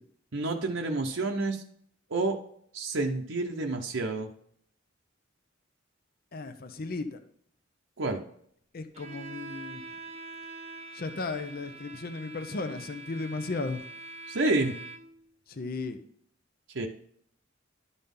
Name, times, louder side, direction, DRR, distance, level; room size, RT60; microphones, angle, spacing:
voice 1, 0.3-1.6 2.1-2.4 2.7-4.3 8.0-8.2 14.3-14.7 16.7-16.9, right 2 dB, 70° right, 2 dB, 0.8 m, -29 dB
voice 2, 6.3-7.2 8.7-9.8 10.9-13.8 15.5-16.0, left 3 dB, 50° left, 9 dB, 0.7 m, -35 dB
Bowed string instrument, 8.9-15.3, right 2 dB, 35° right, 0.8 m, -44 dB
11.5 x 4.2 x 5.4 m, 0.65 s
head